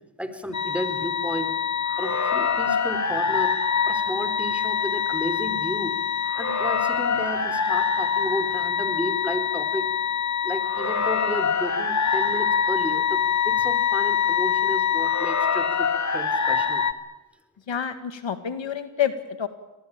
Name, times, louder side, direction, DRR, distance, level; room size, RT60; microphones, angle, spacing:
voice 1, 0.2-1.6 2.0-3.6 3.9-5.9 6.4-9.9 10.4-16.9, equal, ahead, 9 dB, 4.2 m, -33 dB
sound 1, 0.5-16.9, left 7 dB, 35° left, 2.0 m, -24 dB
voice 2, 17.7-19.5, left 9 dB, 65° left, 9 dB, 2.0 m, -28 dB
25.5 x 19.5 x 8.9 m, 1.1 s
supercardioid pair, 45°, 49 cm